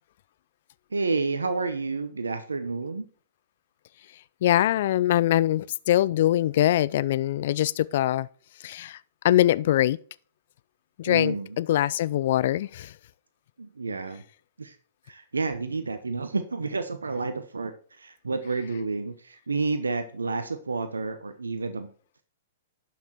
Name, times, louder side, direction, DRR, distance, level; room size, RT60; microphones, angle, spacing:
voice 1, 0.9-3.0 11.0-11.6 13.6-14.2 14.6-14.8 15.1-21.9, right 3 dB, 90° right, 0.9 m, -30 dB
voice 2, 4.4-8.3 8.6-9.0 9.2-10.0 11.0-12.9, left 13 dB, 60° left, 0.3 m, -23 dB
11.5 x 6.1 x 4.4 m
hypercardioid pair, 115°, 0 cm